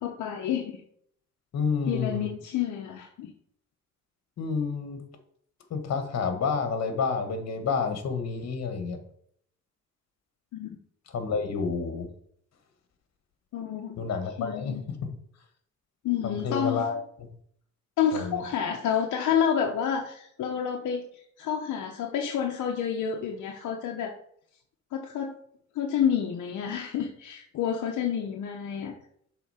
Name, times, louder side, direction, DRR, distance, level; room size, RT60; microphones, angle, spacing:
voice 1, 0.0-0.8 1.9-3.3 10.5-10.7 13.5-14.0 14.4-14.8 16.0-16.9 18.0-21.0 21.4-24.1 24.9-25.4 25.7-28.9, left 8 dB, 75° left, 2 dB, 0.9 m, -29 dB
voice 2, 1.5-2.3 4.4-5.0 5.7-9.0 11.1-12.1 14.0-15.1 16.2-17.0 18.1-18.4, left 5 dB, 60° left, 7 dB, 1.5 m, -29 dB
7.0 x 4.0 x 4.9 m, 0.65 s
cardioid pair, 90°, 30 cm